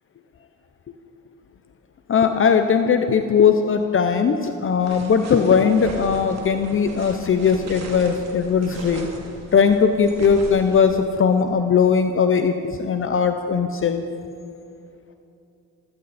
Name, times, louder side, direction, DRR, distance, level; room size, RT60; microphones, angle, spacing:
voice 1, 2.1-9.1 9.5-14.0, left 6 dB, 45° left, 7 dB, 0.9 m, -19 dB
sound 1, 4.8-10.8, right 2 dB, 60° right, 2.7 m, -38 dB
18.5 x 15.5 x 4.3 m, 2.6 s
cardioid pair, 90°, 30 cm